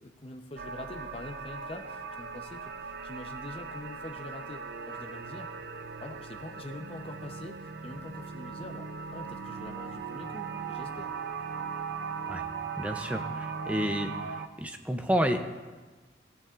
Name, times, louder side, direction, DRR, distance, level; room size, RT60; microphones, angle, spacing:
voice 1, 0.0-5.5 6.0-11.1, left 1 dB, 30° left, 3 dB, 0.7 m, -44 dB
sound 1, 0.6-14.5, right 5 dB, 55° right, 0.5 m, -39 dB
voice 2, 12.8-14.1 14.6-15.4, equal, 5° right, 6 dB, 0.5 m, -30 dB
19.0 x 7.0 x 2.5 m, 1.3 s
head